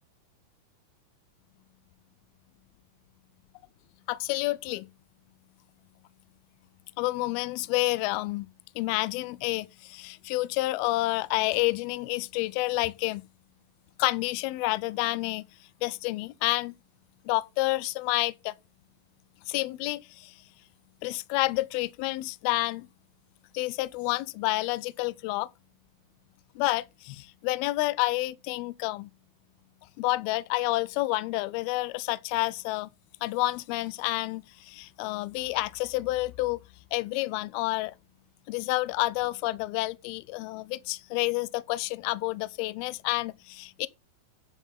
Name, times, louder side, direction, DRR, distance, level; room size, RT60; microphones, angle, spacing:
voice 1, 4.1-4.9 7.0-8.5 8.8-13.2 14.0-15.4 15.8-16.7 17.3-18.5 19.5-20.3 21.0-22.9 23.5-25.5 26.6-29.1 30.0-32.9 33.2-36.6 36.9-37.9 38.5-43.9, left 20 dB, 80° left, 2.4 m, -29 dB
9.4 x 5.8 x 5.5 m
omnidirectional pair, 4.6 m